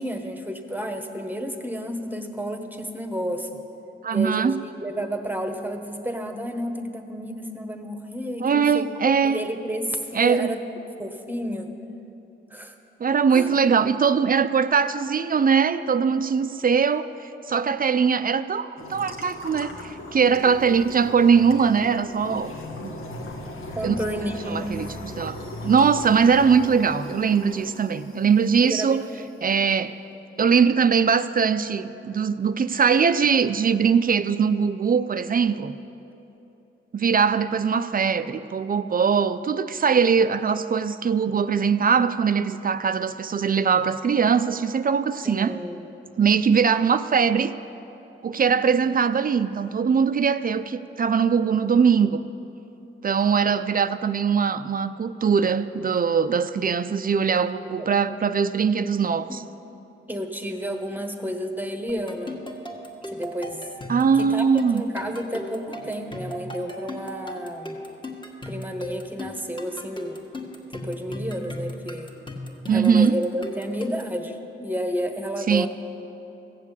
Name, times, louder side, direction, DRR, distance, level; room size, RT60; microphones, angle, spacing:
voice 1, 0.0-3.5 4.1-10.6 11.0-11.7 12.5-12.7 13.3-13.6 23.7-24.8 28.6-29.3 45.2-45.8 57.8-57.9 59.3-59.4 60.1-62.4 63.0-63.6 64.1-64.4 64.7-67.8 68.5-70.2 70.7-72.1 72.7-75.7, equal, 10° right, 5 dB, 1.3 m, -31 dB
voice 2, 4.0-4.6 8.4-9.4 10.1-10.5 13.0-17.1 17.5-22.5 22.8-23.0 23.8-24.0 24.5-24.9 25.2-29.0 29.4-30.0 30.4-35.7 36.9-45.6 46.2-47.6 48.2-52.2 53.0-59.4 63.9-64.8 72.7-73.2 75.5-75.7, right 6 dB, 45° right, 12 dB, 0.5 m, -21 dB
sound 1, 18.8-29.2, left 1 dB, 80° left, 1.5 m, -38 dB
sound 2, 61.9-74.2, left 1 dB, 20° left, 1.8 m, -37 dB
15.0 x 7.4 x 8.3 m, 2.9 s
cardioid pair, 75°, 21 cm